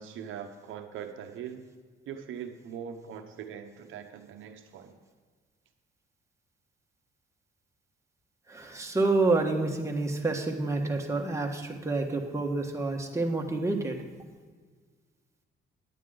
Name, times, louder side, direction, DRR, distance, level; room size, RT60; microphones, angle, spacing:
voice 1, 0.0-1.6 2.1-5.0, right 8 dB, 80° right, 6 dB, 0.8 m, -41 dB
voice 2, 8.5-14.0, right 3 dB, 15° right, 1 dB, 1.4 m, -28 dB
10.0 x 9.5 x 3.8 m, 1.5 s
cardioid pair, 90°, 20 cm